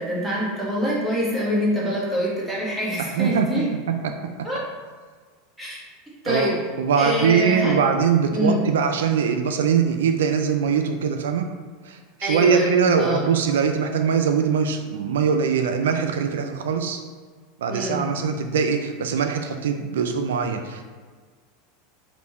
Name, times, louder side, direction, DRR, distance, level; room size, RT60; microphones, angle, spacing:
voice 1, 0.0-3.6 4.4-4.6 5.6-5.8 6.2-6.5 7.0-7.8 8.3-8.6 12.2-13.2 17.7-18.1, equal, ahead, -7 dB, 1.4 m, -25 dB
voice 2, 3.0-4.1 6.3-6.5 6.8-11.5 11.8-17.0 17.6-20.9, right 6 dB, 90° right, 5 dB, 0.3 m, -22 dB
3.4 x 2.5 x 4.2 m, 1.5 s
supercardioid pair, 115°, 0 cm